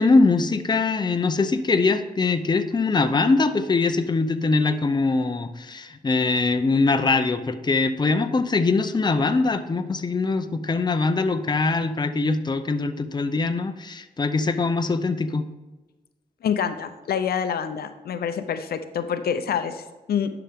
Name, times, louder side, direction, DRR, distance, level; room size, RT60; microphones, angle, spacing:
voice 1, 0.0-15.5, left 3 dB, 30° left, 8 dB, 0.6 m, -22 dB
voice 2, 16.4-19.8 20.1-20.3, left 7 dB, 85° left, 9 dB, 0.6 m, -26 dB
11.0 x 5.8 x 3.6 m, 1.1 s
cardioid pair, 80°, 16 cm